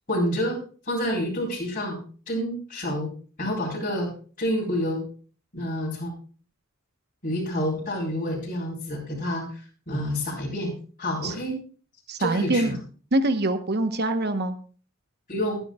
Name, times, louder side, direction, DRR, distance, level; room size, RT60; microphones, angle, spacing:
voice 1, 0.1-2.0 2.3-3.1 3.4-4.1 4.4-5.0 5.5-6.1 7.2-10.7 11.0-11.6 12.2-12.7 15.3-15.6, equal, 40° left, -6 dB, 4.2 m, -28 dB
voice 2, 12.1-12.8 13.1-14.6, right 2 dB, 50° right, 9 dB, 1.1 m, -24 dB
21.5 x 9.2 x 2.3 m, 0.40 s
head